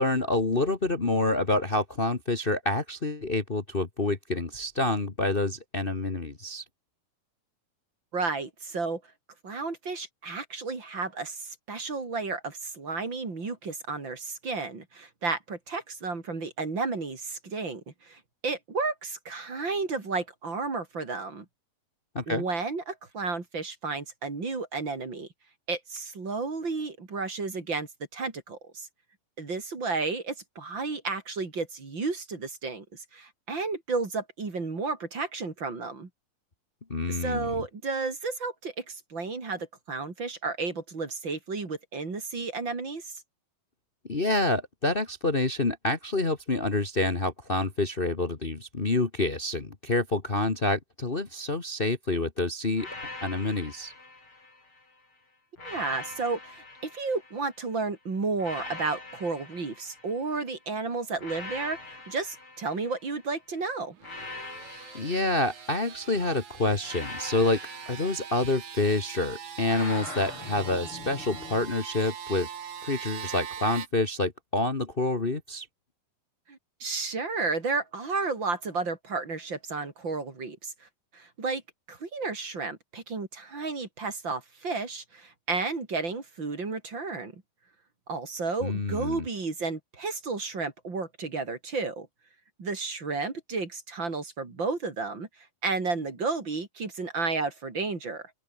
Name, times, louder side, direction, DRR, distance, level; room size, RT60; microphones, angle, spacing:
voice 1, 0.0-6.6 22.1-22.4 36.9-37.6 44.1-52.9 53.2-53.9 64.9-67.6 67.9-72.5 72.8-75.7 88.6-89.2, left 2 dB, 85° left, 0.5 m, -27 dB
voice 2, 8.1-9.0 9.4-21.4 22.3-25.3 25.7-28.9 29.4-32.8 33.1-36.1 37.1-43.1 55.6-64.0 76.5-81.6 81.9-87.4 88.1-92.1 92.6-95.3 95.6-98.3, right 4 dB, 30° right, 4.1 m, -32 dB
sound 1, 52.8-54.9 55.6-57.7 58.4-60.6 61.2-63.3 64.0-66.2 66.8-69.0 69.7-71.7, left 3 dB, 35° left, 7.5 m, -43 dB
sound 2, 63.9-73.9, right 8 dB, 55° right, 3.7 m, -42 dB
open air
omnidirectional pair, 4.2 m